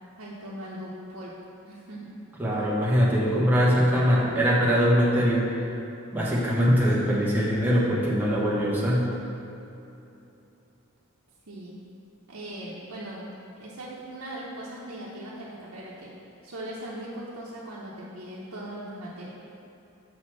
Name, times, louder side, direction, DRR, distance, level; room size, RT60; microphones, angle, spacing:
voice 1, 0.2-1.4 1.6-2.1 11.5-11.8 12.3-16.1 16.4-19.3, right 1 dB, 85° right, -7 dB, 0.9 m, -39 dB
voice 2, 2.4-5.6 6.1-9.1, equal, 10° right, -6 dB, 1.2 m, -22 dB
6.5 x 4.3 x 6.0 m, 2.8 s
head